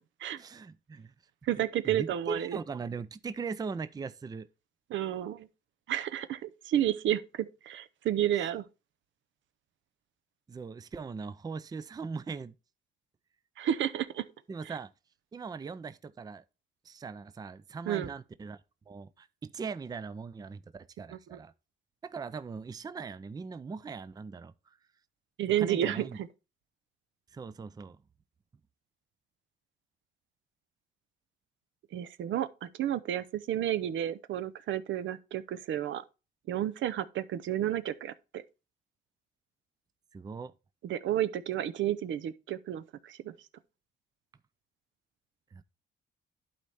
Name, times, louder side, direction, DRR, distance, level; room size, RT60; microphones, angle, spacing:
voice 1, 0.4-1.1 1.5-4.5 10.5-12.6 14.5-14.9 15.3-16.4 16.8-18.6 18.9-21.5 22.0-24.8 25.6-26.2 27.3-28.0 40.1-40.5 45.5-45.6, right 5 dB, 20° right, 0.4 m, -40 dB
voice 2, 1.4-2.6 4.9-5.5 5.9-8.6 13.6-14.2 17.9-18.1 21.1-21.4 25.4-26.3 31.9-36.0 36.5-38.4 40.8-43.3, right 11 dB, 70° right, 0.6 m, -31 dB
11.5 x 4.2 x 3.4 m
cardioid pair, 90°, 20 cm